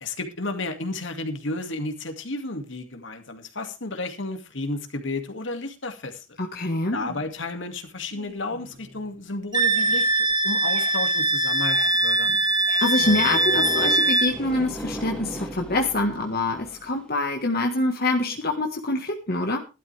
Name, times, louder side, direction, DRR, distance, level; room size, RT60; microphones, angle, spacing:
voice 1, 0.0-6.3 6.9-12.4, left 2 dB, 70° left, 6 dB, 2.4 m, -32 dB
voice 2, 6.4-7.0 12.8-19.6, left 2 dB, 50° left, 2 dB, 1.6 m, -25 dB
sound 1, 7.0-7.5 7.9-9.3 9.6-16.1, right 2 dB, 85° right, 7.0 m, -46 dB
Wind instrument woodwind instrument, 9.5-14.3, right 2 dB, 20° right, 1.9 m, -22 dB
sound 2, 12.9-17.0, right 1 dB, 5° left, 2.8 m, -36 dB
16.0 x 12.0 x 3.5 m, 0.30 s
head